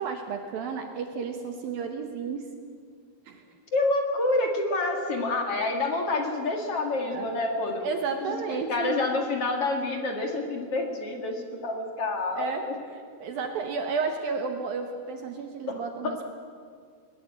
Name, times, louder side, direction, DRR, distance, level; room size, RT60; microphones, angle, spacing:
voice 1, 0.0-2.5 3.3-3.4 7.1-7.3 7.8-8.9 12.4-12.6 13.2-16.2, right 5 dB, 65° right, 5 dB, 2.4 m, -32 dB
voice 2, 3.7-7.8 8.2-8.3 8.7-12.7 15.7-16.1, left 2 dB, 50° left, 3 dB, 1.9 m, -28 dB
21.0 x 20.5 x 8.7 m, 2.1 s
omnidirectional pair, 5.7 m